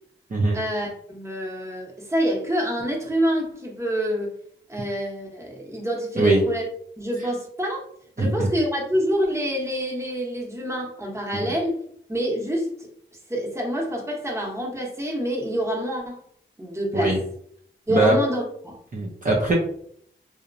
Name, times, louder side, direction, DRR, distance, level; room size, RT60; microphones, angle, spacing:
voice 1, 0.5-4.3 4.7-6.6 7.0-7.8 8.2-11.8 12.1-12.7 13.3-16.2 16.6-17.1 17.9-18.8, equal, 15° right, -2 dB, 0.9 m, -27 dB
voice 2, 8.2-8.5 11.3-11.5 16.9-17.2 17.9-18.1 18.9-19.5, right 2 dB, 40° right, -3 dB, 0.5 m, -21 dB
2.8 x 2.1 x 2.5 m, 0.66 s
cardioid pair, 60°, 20 cm